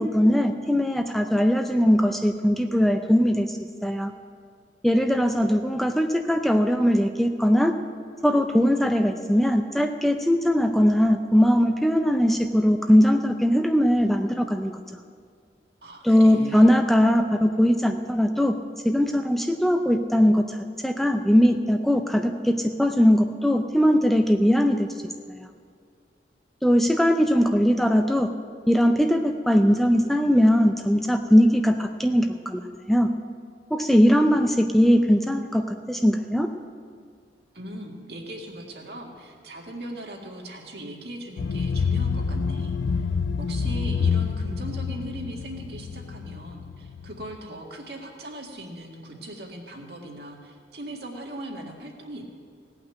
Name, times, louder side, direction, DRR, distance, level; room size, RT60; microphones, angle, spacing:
voice 1, 0.0-4.1 4.8-7.8 8.2-14.7 16.0-18.6 18.8-20.6 20.8-24.9 25.3-25.5 26.6-28.3 28.7-32.6 32.9-33.1 33.7-36.5, equal, ahead, 5 dB, 0.4 m, -20 dB
voice 2, 15.8-16.7 37.5-43.1 43.4-52.2, right 1 dB, 65° right, 0 dB, 1.9 m, -39 dB
sound 1, 41.4-47.4, left 5 dB, 80° left, 0.4 m, -27 dB
17.0 x 5.8 x 8.8 m, 2.1 s
head